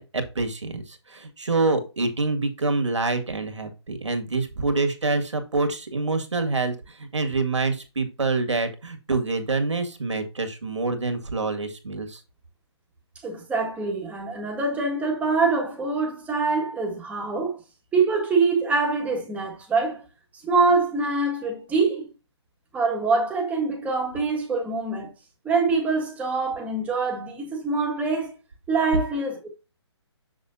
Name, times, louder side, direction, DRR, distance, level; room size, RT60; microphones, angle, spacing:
voice 1, 0.0-12.2, right 3 dB, 80° right, 2.0 m, -26 dB
voice 2, 13.2-17.6 17.9-20.0 20.4-22.1 22.7-25.1 25.4-28.3 28.7-29.5, right 4 dB, 10° right, 1.7 m, -24 dB
7.3 x 6.3 x 2.6 m
hypercardioid pair, 145°, 15 cm